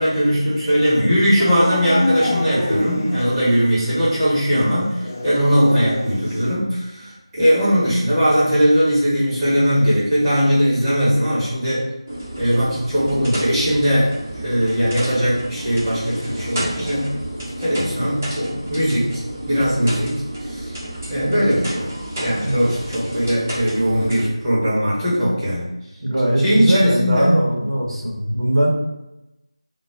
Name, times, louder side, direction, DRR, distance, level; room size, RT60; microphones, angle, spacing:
voice 1, 0.0-11.8 12.4-20.1 20.4-20.8 21.1-21.9 22.2-25.7 26.4-27.3, equal, 5° right, -14 dB, 1.0 m, -19 dB
Dog / Siren, 1.4-3.6 3.9-4.0 5.0-6.5, left 1 dB, 25° left, 0.3 m, -25 dB
sound 1, 12.1-24.3, right 1 dB, 30° right, 0.6 m, -31 dB
voice 2, 26.0-28.7, right 1 dB, 80° right, -2 dB, 0.8 m, -20 dB
2.2 x 2.0 x 3.4 m, 0.93 s
figure-of-eight pair, 165°, 3 cm